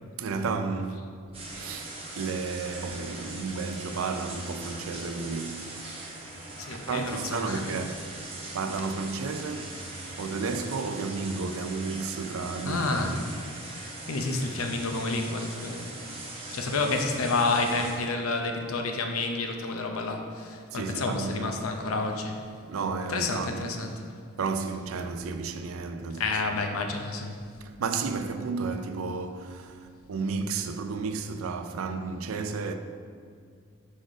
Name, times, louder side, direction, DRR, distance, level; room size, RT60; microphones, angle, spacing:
voice 1, 0.2-1.2 1.5-5.8 6.7-8.2 8.5-13.4 20.7-21.6 22.6-23.7 24.4-26.6 27.6-32.7, right 4 dB, 80° right, 0.4 m, -33 dB
sound 1, 1.3-18.0, right 2 dB, 25° right, 0.8 m, -40 dB
voice 2, 6.6-7.6 12.6-13.1 14.1-15.9 16.5-22.4 23.1-23.9 26.2-27.3, left 3 dB, 80° left, 0.6 m, -29 dB
4.8 x 4.2 x 5.0 m
head